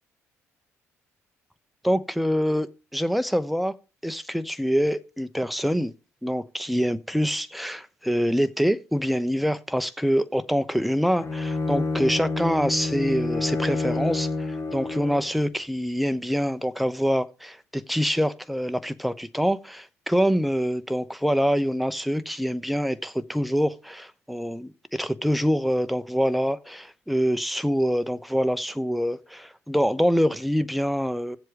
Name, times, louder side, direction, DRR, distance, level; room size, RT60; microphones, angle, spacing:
voice 1, 1.8-2.7 2.9-3.7 4.0-5.9 6.2-31.4, equal, ahead, 0.8 m, -25 dB
Bowed string instrument, 11.2-15.4, left 3 dB, 40° left, 1.4 m, -28 dB
15.5 x 7.5 x 3.5 m
figure-of-eight pair, 50°, 8 cm